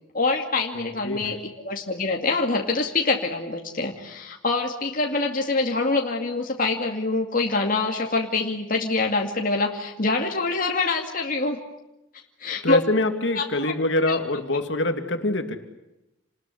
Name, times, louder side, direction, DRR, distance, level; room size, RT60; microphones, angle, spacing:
voice 1, 0.1-11.6 12.4-12.8 13.3-13.7 14.1-14.2, left 3 dB, 45° left, 1 dB, 2.3 m, -25 dB
voice 2, 0.7-1.3 12.6-15.6, left 2 dB, 60° left, 7 dB, 2.6 m, -25 dB
29.5 x 20.5 x 10.0 m, 0.91 s
head